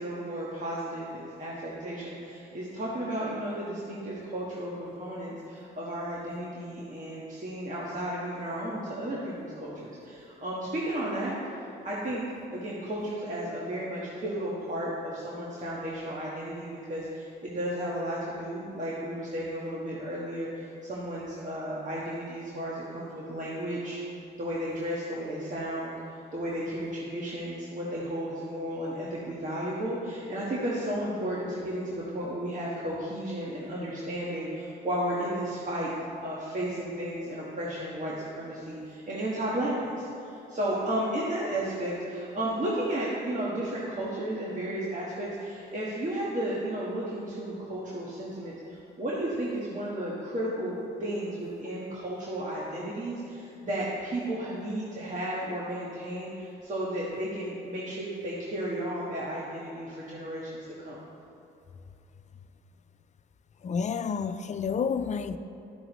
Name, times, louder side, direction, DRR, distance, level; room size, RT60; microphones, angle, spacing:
voice 1, 0.0-11.4 11.6-12.3 12.5-24.0 24.4-35.9 36.2-61.0, right 1 dB, 40° right, 1.4 m, -33 dB
voice 2, 63.6-65.4, left 6 dB, 35° left, 0.4 m, -29 dB
13.0 x 5.9 x 3.0 m
cardioid pair, 90°, 20 cm